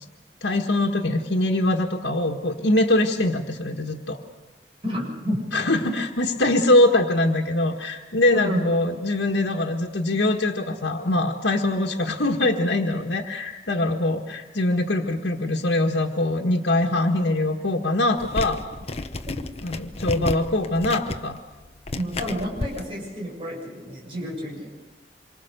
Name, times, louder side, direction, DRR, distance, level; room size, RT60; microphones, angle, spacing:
voice 1, 0.4-4.2 5.5-18.6 19.6-21.4, left 1 dB, 90° left, 1 dB, 1.5 m, -23 dB
voice 2, 4.8-5.4 8.3-8.6 20.1-20.2 21.9-24.7, equal, 30° right, -2 dB, 7.3 m, -30 dB
sound 1, 18.2-22.8, left 2 dB, 35° left, 0.9 m, -32 dB
27.0 x 24.0 x 6.7 m, 1.1 s
head